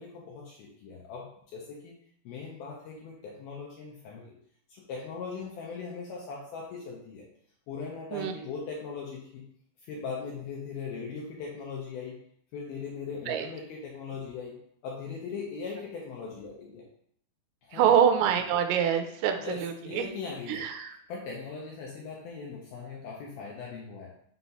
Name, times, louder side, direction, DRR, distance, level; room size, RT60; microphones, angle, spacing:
voice 1, 0.0-1.9 2.3-4.4 4.7-7.2 7.7-9.4 9.9-12.2 12.5-14.6 14.8-16.8 17.6-17.9 19.4-20.7 21.1-24.1, left 5 dB, 75° left, -3 dB, 2.4 m, -39 dB
voice 2, 17.7-20.1 20.5-21.0, right 8 dB, 90° right, 5 dB, 2.9 m, -25 dB
6.9 x 3.1 x 5.5 m, 0.65 s
omnidirectional pair, 5.1 m